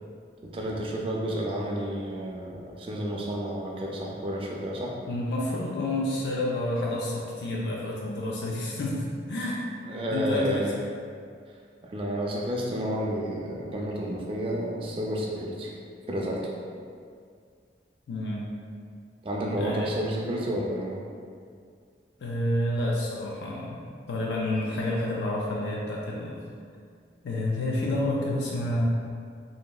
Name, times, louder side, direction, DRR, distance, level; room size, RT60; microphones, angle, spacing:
voice 1, 0.5-4.9 9.9-10.7 11.8-15.7 16.1-16.4 19.2-21.0, equal, 30° right, -2 dB, 0.3 m, -30 dB
voice 2, 5.1-9.6 10.1-10.7 18.1-18.5 19.6-19.9 22.2-26.4 27.2-28.9, left 1 dB, 75° left, -4 dB, 0.4 m, -29 dB
2.9 x 2.7 x 2.3 m, 2.2 s
head